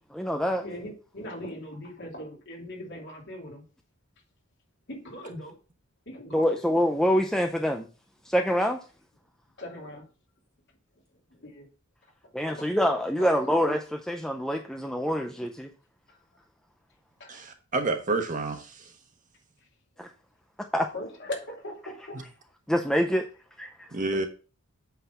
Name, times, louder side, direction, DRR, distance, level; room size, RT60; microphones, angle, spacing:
voice 1, 0.1-0.6 6.3-7.9 8.3-8.8 12.3-15.7 20.0-20.1 20.7-20.9 22.7-23.3 23.6-23.9, equal, 5° left, 4 dB, 0.5 m, -25 dB
voice 2, 0.6-3.6 4.9-5.5 6.1-6.6 9.6-10.1 11.3-11.7 12.5-12.8 13.2-13.3 16.1-16.2 17.2-17.3 20.9-22.2 24.1-24.3, left 1 dB, 60° left, -1 dB, 2.8 m, -40 dB
voice 3, 17.3-18.9 23.9-24.3, right 3 dB, 40° right, 5 dB, 1.3 m, -29 dB
8.2 x 4.0 x 5.8 m, 0.36 s
head